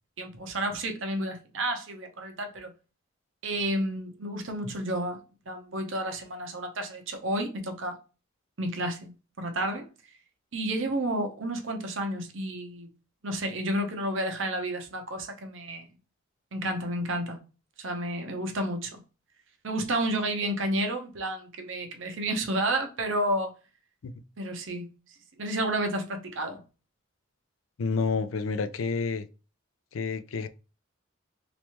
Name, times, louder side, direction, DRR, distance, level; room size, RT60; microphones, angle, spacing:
voice 1, 0.2-2.7 3.4-5.2 5.5-8.0 8.6-9.1 9.4-9.9 10.5-12.9 13.2-15.9 16.5-17.4 17.8-19.0 19.6-23.5 24.4-24.9 25.4-26.6, right 1 dB, 70° right, 0.9 m, -31 dB
voice 2, 27.8-29.3 29.9-30.5, left 4 dB, 85° left, 0.4 m, -29 dB
3.3 x 3.1 x 3.0 m
head